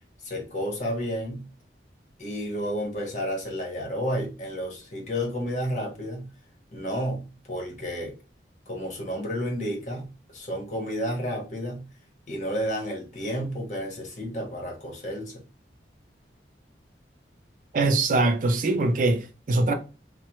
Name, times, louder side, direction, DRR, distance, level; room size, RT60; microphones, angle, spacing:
voice 1, 0.2-1.5 2.2-6.3 6.7-8.1 8.7-11.9 12.3-15.4, equal, 45° left, 1.0 m, -31 dB
voice 2, 17.7-19.7, right 2 dB, 45° right, 0.4 m, -22 dB
3.1 x 2.0 x 3.0 m
head